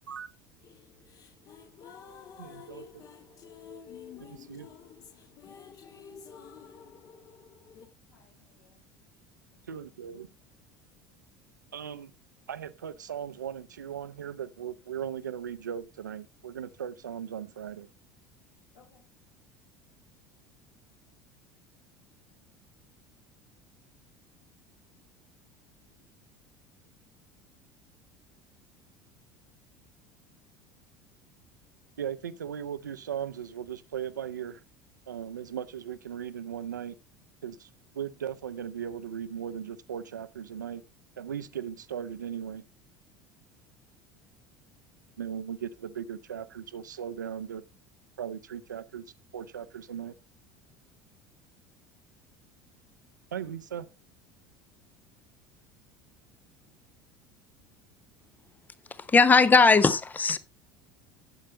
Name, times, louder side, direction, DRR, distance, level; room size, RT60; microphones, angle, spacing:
sound 1, 0.6-7.9, left 7 dB, 40° left, 1.5 m, -50 dB
voice 1, 2.4-3.0 4.2-4.7 9.7-10.3 11.7-12.1 12.5-17.9 32.0-34.6 35.1-37.0 37.4-37.7 37.9-40.8 41.2-42.6 45.2-47.6 48.2-49.0 49.3-50.1 53.3-53.9, right 9 dB, 75° right, 0.7 m, -38 dB
voice 2, 8.1-8.9 9.5-10.4 18.7-19.0, left 5 dB, 65° left, 5.4 m, -65 dB
voice 3, 58.9-60.4, left 4 dB, 15° left, 0.8 m, -19 dB
11.5 x 8.5 x 3.0 m
figure-of-eight pair, 70°, 10 cm